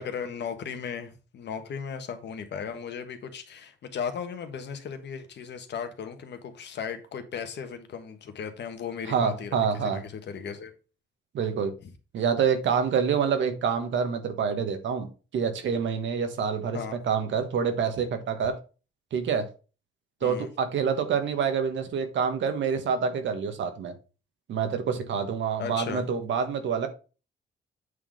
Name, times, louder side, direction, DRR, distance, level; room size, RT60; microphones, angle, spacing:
voice 1, 0.0-10.7 11.8-11.9 16.7-17.0 20.2-20.5 25.6-26.0, left 7 dB, 60° left, 1.3 m, -36 dB
voice 2, 9.1-10.0 11.3-11.7 12.1-15.1 15.3-16.8 17.0-18.5 19.1-19.5 20.2-23.9 24.5-26.9, right 6 dB, 70° right, 1.4 m, -27 dB
8.3 x 3.8 x 5.1 m
cardioid pair, 90°, 20 cm